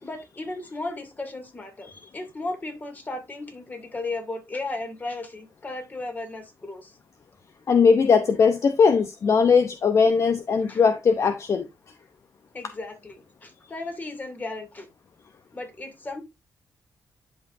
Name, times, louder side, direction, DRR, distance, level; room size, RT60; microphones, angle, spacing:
voice 1, 0.0-6.9 10.7-10.8 12.5-14.9 15.5-16.2, left 2 dB, 30° left, 2.5 m, -35 dB
voice 2, 7.7-11.7, left 5 dB, 50° left, 0.7 m, -19 dB
11.0 x 5.4 x 2.6 m
cardioid pair, 85°, 6 cm